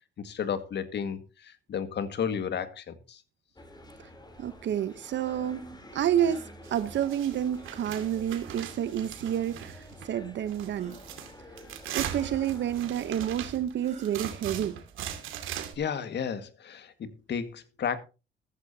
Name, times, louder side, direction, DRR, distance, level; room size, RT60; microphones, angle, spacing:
voice 1, 0.2-3.2 15.8-18.0, left 7 dB, 60° left, 1.9 m, -33 dB
sound 1, 3.6-13.3, left 1 dB, 20° left, 3.5 m, -49 dB
voice 2, 4.4-5.7 5.9-11.0 11.9-14.8, right 10 dB, 65° right, 0.9 m, -29 dB
sound 2, 6.1-6.5 7.6-8.0 9.2-9.6 10.7-11.3 12.1-12.6 13.8-14.4, right 4 dB, 35° right, 6.7 m, -51 dB
sound 3, 6.6-10.2 10.5-15.8, right 10 dB, 90° right, 2.4 m, -40 dB
14.5 x 14.5 x 2.8 m
cardioid pair, 90°, 20 cm